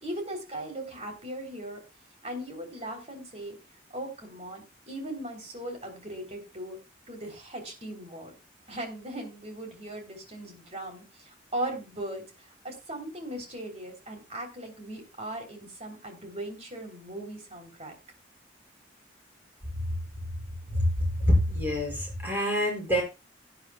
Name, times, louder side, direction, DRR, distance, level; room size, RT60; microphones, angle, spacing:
voice 1, 0.0-1.8 2.2-3.6 3.9-6.8 7.1-8.3 8.7-17.9, right 1 dB, 35° right, 2 dB, 3.6 m, -38 dB
voice 2, 21.2-23.0, left 1 dB, 10° right, -1 dB, 6.4 m, -25 dB
17.5 x 9.7 x 2.4 m, 0.26 s
head